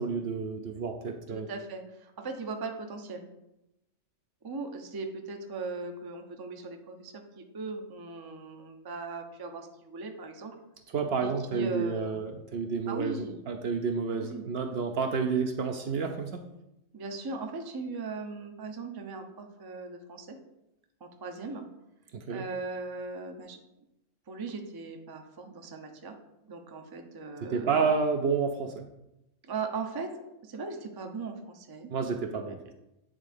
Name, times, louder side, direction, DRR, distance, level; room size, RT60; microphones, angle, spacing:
voice 1, 0.0-1.5 10.9-16.4 22.1-22.4 27.4-28.9 31.9-32.7, right 5 dB, 60° right, 5 dB, 0.8 m, -30 dB
voice 2, 1.3-3.3 4.4-10.6 11.2-12.2 12.9-13.4 14.1-14.5 16.9-20.4 21.0-21.6 22.3-23.6 24.3-26.1 26.5-27.9 29.5-30.1 30.4-31.9 32.5-32.6, right 4 dB, 25° right, 5 dB, 0.5 m, -38 dB
8.9 x 3.6 x 3.5 m, 0.89 s
omnidirectional pair, 1.3 m